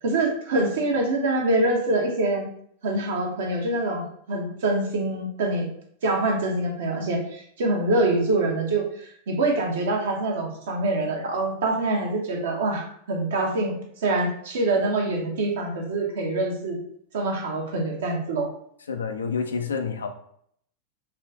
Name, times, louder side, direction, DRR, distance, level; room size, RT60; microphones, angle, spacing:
voice 1, 0.0-2.5 2.8-5.7 6.0-13.7 14.0-16.8 17.1-18.5, right 2 dB, 60° right, 0 dB, 0.9 m, -25 dB
voice 2, 18.9-20.1, left 5 dB, 70° left, 6 dB, 0.4 m, -28 dB
3.6 x 2.4 x 3.4 m, 0.66 s
figure-of-eight pair, 90°, 0 cm